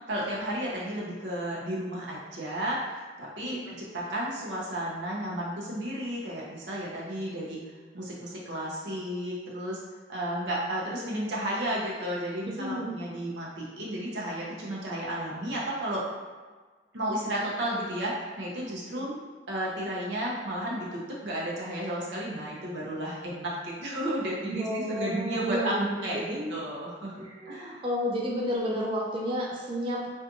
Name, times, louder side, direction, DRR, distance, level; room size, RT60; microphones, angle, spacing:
voice 1, 0.1-2.8 3.2-7.6 7.9-9.8 10.1-16.0 16.9-19.1 19.5-25.7 26.0-27.8, right 1 dB, 90° right, -5 dB, 0.7 m, -33 dB
voice 2, 12.5-13.0 18.9-19.2 24.5-26.6 27.2-30.1, equal, 30° right, -3 dB, 0.3 m, -31 dB
2.6 x 2.4 x 2.5 m, 1.4 s
head